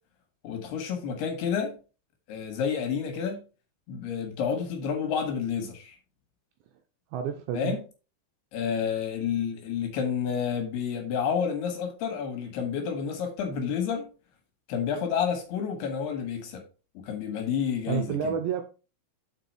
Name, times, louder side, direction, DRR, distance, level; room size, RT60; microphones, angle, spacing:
voice 1, 0.4-1.7 2.3-3.4 3.9-6.0 7.5-7.8 8.5-14.1 14.7-16.6 17.0-18.1, left 7 dB, 70° left, 2.7 m, -29 dB
voice 2, 7.1-7.8 17.9-18.6, right 8 dB, 90° right, 2.6 m, -29 dB
8.3 x 4.7 x 4.5 m
omnidirectional pair, 5.8 m